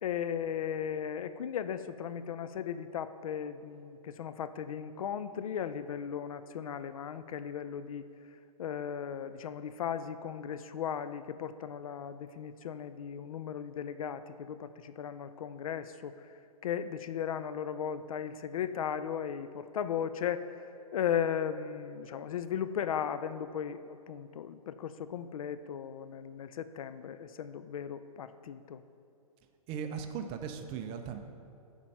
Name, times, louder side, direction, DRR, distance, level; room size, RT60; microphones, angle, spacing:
voice 1, 0.0-8.0 8.6-16.1 16.6-20.4 20.9-28.8, left 8 dB, 65° left, 12 dB, 0.4 m, -36 dB
voice 2, 29.7-31.2, right 7 dB, 30° right, 7 dB, 0.6 m, -38 dB
9.8 x 4.4 x 5.6 m, 2.6 s
hypercardioid pair, 120°, 20 cm